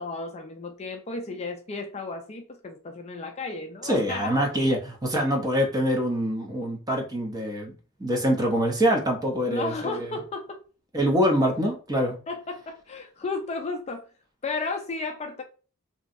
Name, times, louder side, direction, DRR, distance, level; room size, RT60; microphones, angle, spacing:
voice 1, 0.0-4.4 9.5-10.6 12.3-14.0 14.4-15.4, left 3 dB, 30° left, 0.4 m, -33 dB
voice 2, 3.8-7.7 8.0-10.1 10.9-12.2, equal, 20° right, 0.7 m, -25 dB
3.0 x 2.7 x 2.5 m
head